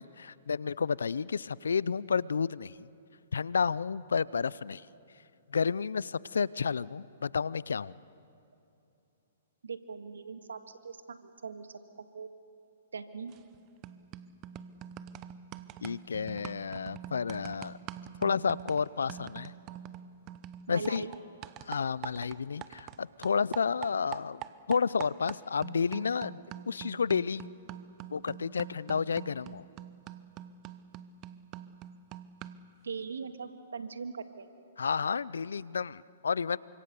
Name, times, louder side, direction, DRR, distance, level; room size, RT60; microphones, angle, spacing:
voice 1, 0.0-2.9 3.3-4.9 5.5-8.0 15.8-17.8 18.2-19.5 20.7-21.1 21.7-24.4 24.7-26.4 26.7-27.5 28.1-29.7 34.8-36.6, left 5 dB, 80° left, 21 dB, 0.6 m, -31 dB
voice 2, 9.6-11.8 12.1-12.3 12.9-13.3 20.7-21.2 32.8-34.5, right 5 dB, 85° right, 8 dB, 1.9 m, -40 dB
sound 1, 13.3-13.6 13.8-23.0 23.2-32.7, right 11 dB, 30° right, 0.9 m, -45 dB
28.5 x 25.5 x 7.0 m, 2.7 s
hypercardioid pair, 130°, 0 cm